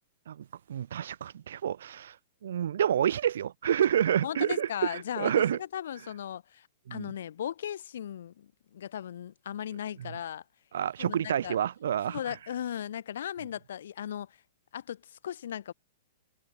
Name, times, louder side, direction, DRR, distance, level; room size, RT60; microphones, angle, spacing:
voice 1, 0.3-2.2 2.4-5.6 6.9-7.1 10.0-10.1 10.7-12.2, right 9 dB, 70° right, 6.1 m, -29 dB
voice 2, 4.2-10.4 11.0-11.6 12.1-14.4 14.7-15.7, left 10 dB, 65° left, 7.6 m, -37 dB
supercardioid pair, 175°, 0 cm